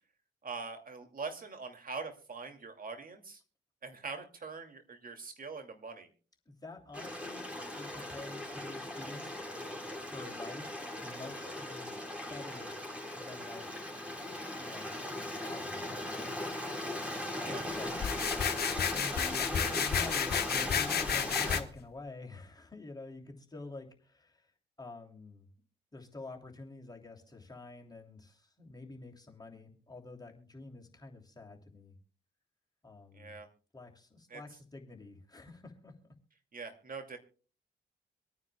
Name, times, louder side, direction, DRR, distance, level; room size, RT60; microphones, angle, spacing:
voice 1, 0.4-3.4 3.8-6.1 17.4-17.6 33.1-33.5 34.3-34.4 36.5-37.2, right 4 dB, 45° right, 5 dB, 2.6 m, -43 dB
voice 2, 6.5-7.4 7.8-9.4 10.0-12.0 12.3-12.7 13.2-13.7 14.6-15.0 15.4-16.3 17.3-17.9 18.9-24.4 24.8-25.4 25.9-31.9 32.8-33.3 33.7-35.9, left 2 dB, 20° left, 0 dB, 3.0 m, -48 dB
Stream, 6.9-21.6, left 1 dB, 5° right, 4.3 m, -39 dB
sound 1, 18.0-21.6, left 8 dB, 55° left, 1.2 m, -31 dB
25.0 x 9.6 x 2.3 m, 0.37 s
hypercardioid pair, 45°, 19 cm